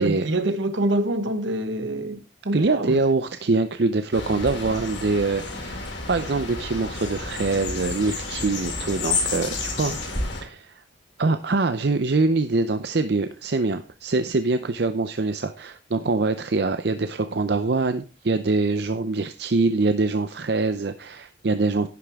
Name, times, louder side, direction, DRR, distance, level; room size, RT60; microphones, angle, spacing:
voice 1, 0.0-3.0 9.9-10.0, right 1 dB, 75° right, 1.3 m, -26 dB
voice 2, 2.5-9.9 10.4-10.8 11.2-21.9, right 3 dB, 60° right, 0.6 m, -24 dB
sound 1, 4.1-10.4, left 3 dB, 75° left, 4.5 m, -30 dB
11.0 x 10.5 x 3.6 m
head